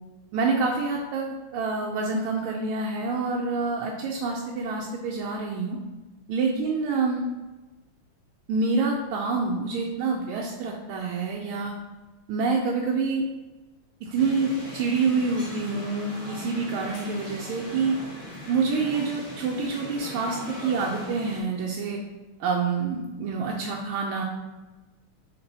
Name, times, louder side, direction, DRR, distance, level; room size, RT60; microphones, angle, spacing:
voice 1, 0.3-5.8 6.3-7.2 8.5-11.7 12.3-13.2 14.0-17.9 18.5-22.0 22.4-24.2, right 4 dB, 80° right, -1 dB, 1.4 m, -27 dB
sound 1, 14.2-21.4, left 1 dB, 30° left, 1.0 m, -39 dB
3.6 x 3.3 x 4.0 m, 1.1 s
omnidirectional pair, 2.4 m